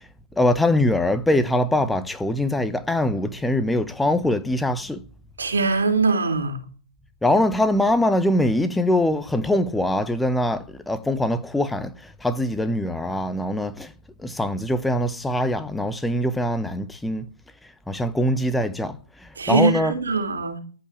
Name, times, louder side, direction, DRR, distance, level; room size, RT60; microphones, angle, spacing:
voice 1, 0.4-5.0 7.2-11.9 12.2-13.9 14.2-17.3 17.9-19.0 19.5-19.9, left 1 dB, 5° left, 1.0 m, -22 dB
voice 2, 5.4-6.6 19.4-20.6, right 4 dB, 90° right, 3.4 m, -22 dB
14.0 x 5.6 x 8.3 m
hypercardioid pair, 130°, 0 cm